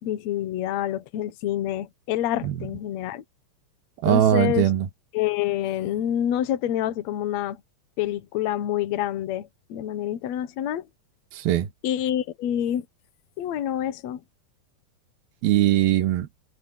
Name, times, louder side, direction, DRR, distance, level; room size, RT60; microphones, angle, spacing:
voice 1, 0.0-3.2 4.0-4.7 5.1-7.6 8.0-10.9 11.8-12.9 13.4-14.2, left 11 dB, 65° left, 1.9 m, -27 dB
voice 2, 4.0-4.9 11.3-11.7 15.4-16.3, right 12 dB, 75° right, 3.0 m, -20 dB
omnidirectional pair, 4.6 m